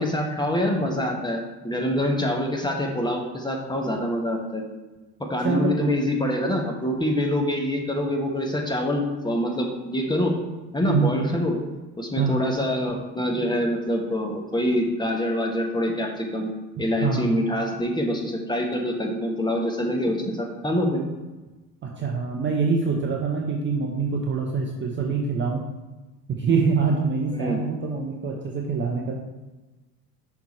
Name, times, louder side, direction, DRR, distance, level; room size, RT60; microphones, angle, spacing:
voice 1, 0.0-4.6 5.3-10.3 10.7-11.6 12.0-16.5 16.8-21.0 27.3-27.6, left 1 dB, 10° left, 0 dB, 1.1 m, -25 dB
voice 2, 5.4-6.0 10.8-11.1 12.2-12.5 17.0-17.3 21.8-25.6 26.3-29.1, right 5 dB, 25° right, 0 dB, 0.7 m, -25 dB
5.9 x 4.7 x 4.3 m, 1.2 s
figure-of-eight pair, 65°, 50 cm